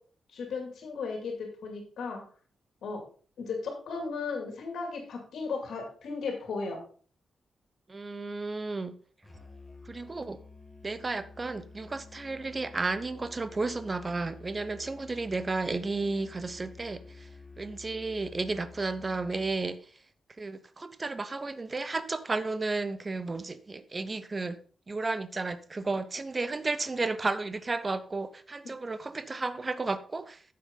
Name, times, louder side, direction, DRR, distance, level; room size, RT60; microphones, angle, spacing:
voice 1, 0.3-2.2 2.8-3.0 3.4-6.8, left 4 dB, 80° left, 2.4 m, -35 dB
voice 2, 7.9-9.0 9.8-10.4 10.8-17.3 17.6-19.8 20.4-30.4, right 3 dB, 25° right, 0.7 m, -33 dB
Musical instrument, 9.2-19.6, left 3 dB, 5° left, 1.9 m, -50 dB
9.3 x 7.5 x 3.8 m
wide cardioid pair, 135°, 0 cm